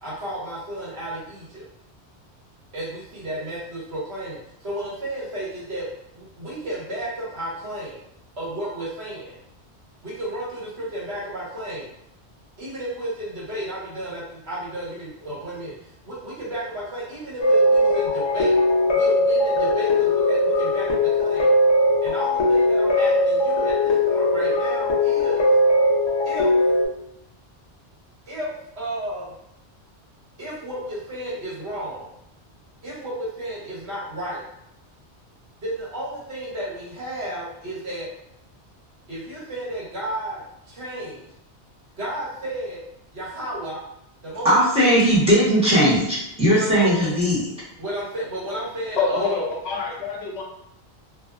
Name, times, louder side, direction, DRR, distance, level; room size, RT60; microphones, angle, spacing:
voice 1, 0.0-1.7 2.7-5.9 6.1-8.0 8.4-9.4 10.0-11.9 12.6-15.7 16.0-18.6 18.9-21.5 22.0-25.5 26.2-26.6 28.3-29.3 30.4-32.1 32.8-34.4 35.6-38.1 39.1-41.2 42.0-42.8 43.1-43.8 44.2-44.9 46.5-47.1 47.8-49.5, right 1 dB, 70° right, -7 dB, 1.3 m, -32 dB
sound 1, 17.4-26.9, left 1 dB, 45° left, 0.3 m, -19 dB
voice 2, 44.4-47.4, equal, 5° right, -9 dB, 0.9 m, -18 dB
voice 3, 48.9-50.4, left 4 dB, 75° left, 0 dB, 0.8 m, -25 dB
2.6 x 2.0 x 2.4 m, 0.79 s
omnidirectional pair, 1.1 m